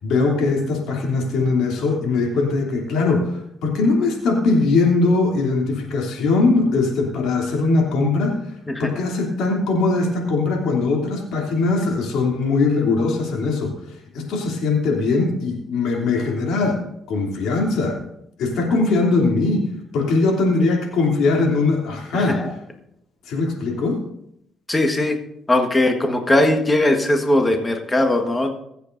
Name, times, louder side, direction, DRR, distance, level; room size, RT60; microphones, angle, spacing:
voice 1, 0.0-16.8 17.1-18.0 18.4-22.5 23.2-24.0, left 3 dB, 85° left, 0 dB, 3.0 m, -21 dB
voice 2, 22.1-22.5 24.7-25.2 25.5-28.5, left 1 dB, 20° left, 4 dB, 1.5 m, -19 dB
23.5 x 8.2 x 2.7 m, 0.76 s
cardioid pair, 90°, 0 cm